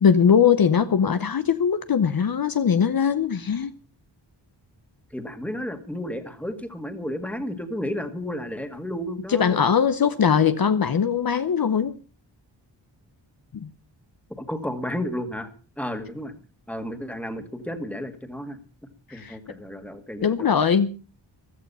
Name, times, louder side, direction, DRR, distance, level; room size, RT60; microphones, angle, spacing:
voice 1, 0.0-3.7 9.3-12.0 13.5-13.7 19.1-19.4 20.2-20.9, left 7 dB, 55° left, 0.8 m, -21 dB
voice 2, 5.1-9.6 14.4-15.5 15.8-16.3 16.7-18.6 19.1-20.4, equal, 5° left, 1.9 m, -32 dB
15.5 x 14.0 x 5.5 m
wide cardioid pair, 170°, 44 cm